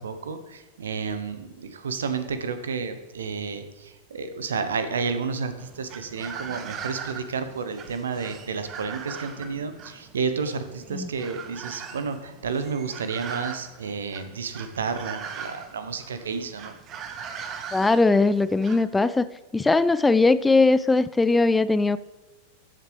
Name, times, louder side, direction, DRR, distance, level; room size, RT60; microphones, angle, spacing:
voice 1, 0.0-16.7, right 5 dB, 65° right, 10 dB, 1.0 m, -31 dB
sound 1, 5.6-18.8, right 6 dB, 30° right, 1.0 m, -40 dB
voice 2, 17.7-19.3 19.5-22.0, left 3 dB, 10° left, 15 dB, 0.3 m, -20 dB
14.0 x 7.7 x 3.4 m, 1.2 s
figure-of-eight pair, 90°, 0 cm